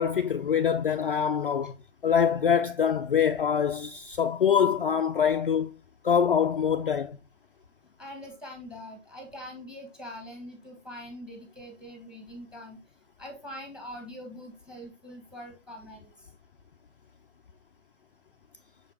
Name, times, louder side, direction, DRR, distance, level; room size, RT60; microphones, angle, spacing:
voice 1, 0.0-1.8 2.0-5.7 6.0-7.2, left 7 dB, 45° left, 0.4 m, -24 dB
voice 2, 8.0-12.8 13.2-16.1, equal, 5° right, 1.3 m, -43 dB
6.2 x 4.9 x 3.3 m
figure-of-eight pair, 130°, 38 cm